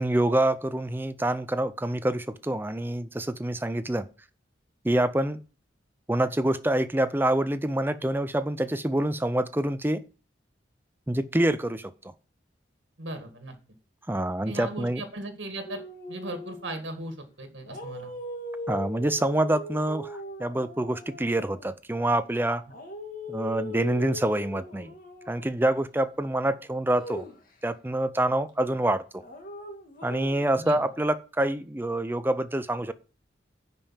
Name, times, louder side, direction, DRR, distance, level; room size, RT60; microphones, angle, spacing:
voice 1, 0.0-4.1 4.8-5.4 6.1-10.0 11.1-11.9 14.1-15.0 18.7-22.6 23.3-24.9 25.3-27.3 27.6-29.2 30.0-32.9, right 1 dB, 10° right, 13 dB, 0.5 m, -26 dB
voice 2, 13.0-13.5 14.5-15.8 16.1-18.1 30.6-30.9, right 1 dB, 80° right, 5 dB, 1.9 m, -37 dB
sound 1, 15.7-16.8 17.6-21.7 22.7-25.5 26.9-27.4 29.2-31.0, left 1 dB, 45° left, 2.2 m, -40 dB
10.0 x 5.4 x 7.3 m, 0.36 s
head